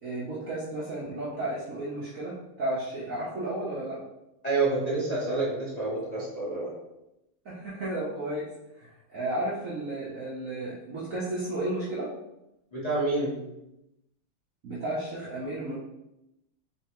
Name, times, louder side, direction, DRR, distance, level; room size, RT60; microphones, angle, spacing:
voice 1, 0.0-4.0 7.4-8.5 8.8-12.1 14.6-15.7, right 1 dB, 60° right, -7 dB, 0.9 m, -33 dB
voice 2, 4.4-6.7 12.7-13.4, right 3 dB, 30° left, -8 dB, 0.8 m, -28 dB
3.9 x 3.3 x 2.9 m, 0.89 s
omnidirectional pair, 2.2 m